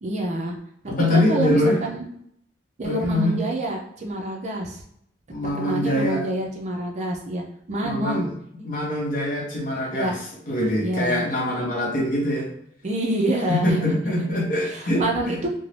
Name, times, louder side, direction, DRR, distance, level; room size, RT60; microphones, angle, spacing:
voice 1, 0.0-0.6 1.1-2.0 2.8-4.8 5.4-8.3 9.9-10.1 10.8-11.3 12.8-14.3 14.6-15.5, right 1 dB, 35° right, 1 dB, 0.4 m, -27 dB
voice 2, 0.9-1.8 2.8-3.3 5.3-6.2 7.8-8.3 8.6-10.2 10.5-12.5 13.5-15.4, left 1 dB, 45° left, -2 dB, 0.7 m, -23 dB
2.5 x 2.0 x 3.1 m, 0.73 s
head